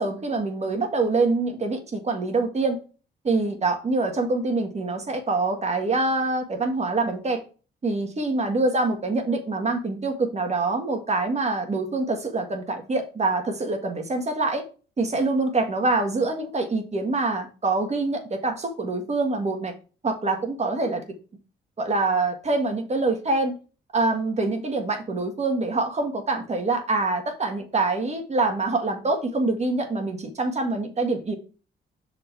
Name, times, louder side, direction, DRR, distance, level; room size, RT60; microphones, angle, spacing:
voice 1, 0.0-2.8 3.2-7.4 7.8-14.6 15.0-19.7 20.0-21.0 21.8-23.6 23.9-31.3, right 3 dB, 35° right, 4 dB, 1.9 m, -25 dB
6.5 x 4.3 x 4.7 m, 0.35 s
cardioid pair, 90°, 20 cm